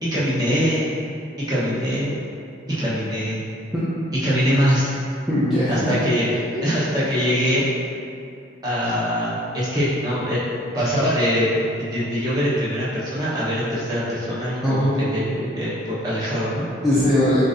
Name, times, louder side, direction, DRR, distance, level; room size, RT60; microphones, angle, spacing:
voice 1, 0.0-1.0 1.5-2.2 2.8-3.4 4.2-4.9 5.7-6.4 6.6-7.6 8.6-10.4 10.7-16.7, equal, 20° right, -10 dB, 1.2 m, -23 dB
voice 2, 5.3-5.9 14.6-15.3 16.8-17.4, left 1 dB, ahead, -13 dB, 0.6 m, -20 dB
7.0 x 2.7 x 2.7 m, 2.5 s
head